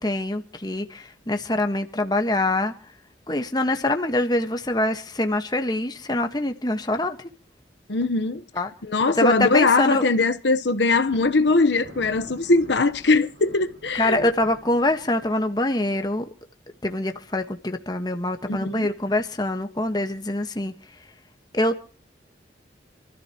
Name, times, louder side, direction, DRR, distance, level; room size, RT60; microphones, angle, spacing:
voice 1, 0.0-2.7 3.3-7.3 8.5-8.7 9.1-10.1 13.9-16.3 16.8-20.7 21.5-21.8, left 1 dB, 20° left, 1.3 m, -24 dB
voice 2, 7.9-8.4 8.8-14.3 18.5-18.9, left 3 dB, 80° left, 1.0 m, -21 dB
Thunder, 10.9-15.5, equal, 80° right, 5.8 m, -46 dB
28.5 x 13.5 x 3.0 m
head